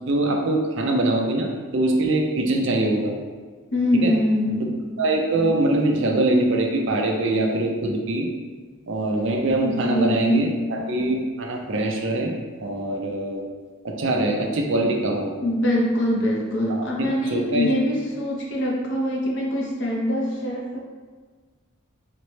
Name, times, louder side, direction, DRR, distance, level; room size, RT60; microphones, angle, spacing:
voice 1, 0.1-3.1 4.0-4.1 5.0-8.3 8.9-12.3 12.6-13.4 13.8-15.3 17.3-17.7, right 2 dB, 60° right, 1 dB, 0.5 m, -23 dB
voice 2, 3.7-4.8 9.6-10.6 15.4-20.8, equal, 60° left, -2 dB, 0.7 m, -23 dB
4.1 x 2.1 x 3.1 m, 1.5 s
head